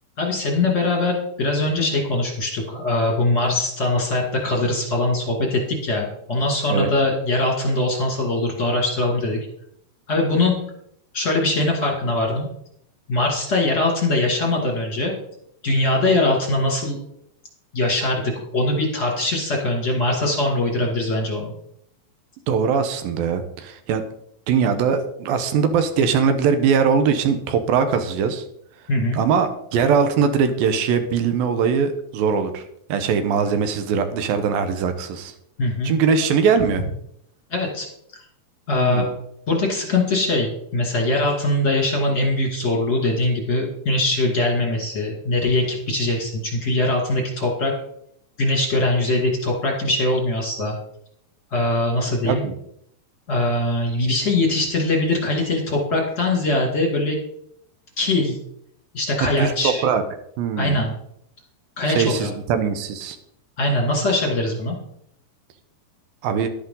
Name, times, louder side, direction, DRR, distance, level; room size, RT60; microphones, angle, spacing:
voice 1, 0.2-9.4 10.1-10.6 11.1-12.5 13.1-15.1 15.6-17.0 17.7-21.5 28.9-29.2 35.6-35.9 37.5-37.9 38.7-39.1 39.5-47.7 48.4-50.7 51.5-52.4 53.3-57.2 58.0-58.4 58.9-59.8 60.5-60.9 61.8-62.3 63.6-64.7, left 2 dB, 30° left, -1 dB, 1.7 m, -22 dB
voice 2, 22.5-24.0 24.5-28.5 29.1-32.6 32.9-35.3 35.8-36.8 38.7-39.1 52.3-52.5 59.4-60.0 60.4-60.8 61.9-63.2 66.2-66.5, right 6 dB, 75° right, 9 dB, 2.6 m, -21 dB
11.5 x 10.5 x 3.8 m, 0.73 s
omnidirectional pair, 4.4 m